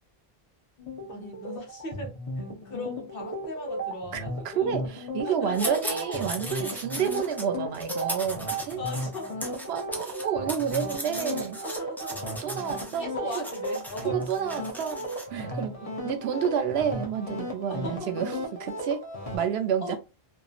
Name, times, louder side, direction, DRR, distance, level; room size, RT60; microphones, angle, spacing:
sound 1, 0.8-19.4, equal, 40° left, 0.8 m, -35 dB
voice 1, 1.1-4.8 5.2-6.5 8.8-9.7 11.6-12.7 13.0-14.2 15.5-16.4 17.7-18.4 19.3-19.5 19.8-20.0, left 1 dB, 60° left, 1.1 m, -38 dB
voice 2, 4.1-8.8 9.7-11.6 12.4-13.1 13.4-13.5 14.0-15.0 15.3-15.7 16.0-18.3 18.8-19.0 19.3-20.0, right 8 dB, 80° right, 0.8 m, -29 dB
sound 2, 5.5-7.5 7.7-13.0 13.3-15.3, equal, 5° left, 0.4 m, -38 dB
2.9 x 2.4 x 2.4 m
omnidirectional pair, 1.1 m